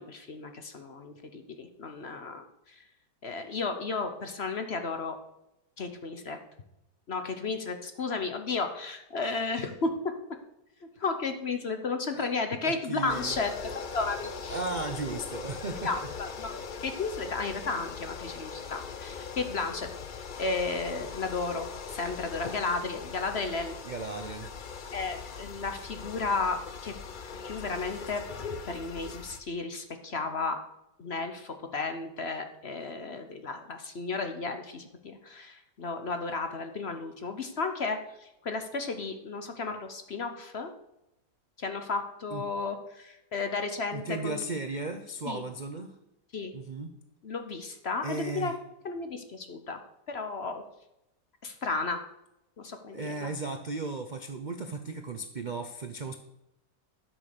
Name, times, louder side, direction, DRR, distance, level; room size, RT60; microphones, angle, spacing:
voice 1, 0.0-2.8 3.2-5.2 5.8-6.4 7.1-9.9 10.8-13.5 13.9-14.6 15.8-19.9 20.4-23.8 24.9-26.9 27.4-28.2 28.7-30.6 31.0-40.7 41.6-44.4 45.3-45.4 46.3-46.5 47.2-48.5 48.8-49.8 50.1-50.6 51.4-52.0 52.6-53.3, left 4 dB, 45° left, 7 dB, 0.9 m, -33 dB
voice 2, 12.6-13.3 14.5-16.1 23.9-24.5 42.3-42.4 43.9-46.0 46.5-47.0 48.0-48.6 52.9-56.2, right 3 dB, 75° right, 7 dB, 0.4 m, -35 dB
sound 1, 13.1-29.4, left 5 dB, 70° left, 0.4 m, -40 dB
12.0 x 6.2 x 6.6 m, 0.88 s
omnidirectional pair, 1.9 m